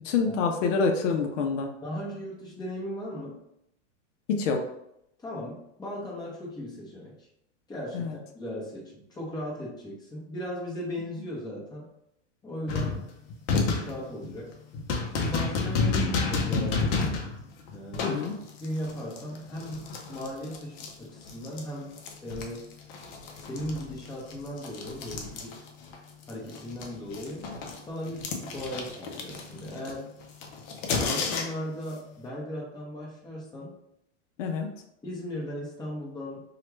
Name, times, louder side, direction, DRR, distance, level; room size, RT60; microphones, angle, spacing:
voice 1, 0.0-1.7 4.3-4.6 7.9-8.2 18.0-18.3 34.4-34.7, left 5 dB, 85° left, 4 dB, 0.7 m, -26 dB
voice 2, 1.8-3.4 5.2-7.3 7.7-11.9 12.4-13.1 13.5-14.5 15.1-17.0 17.7-18.3 18.6-22.7 23.4-25.5 26.3-27.5 27.8-30.1 31.0-33.7 35.0-36.4, left 1 dB, 10° left, -4 dB, 0.9 m, -37 dB
sound 1, 12.7-21.7 22.0-26.0 26.2-31.8, left 4 dB, 50° left, 0.7 m, -31 dB
3.1 x 2.4 x 3.0 m, 0.79 s
supercardioid pair, 130°, 36 cm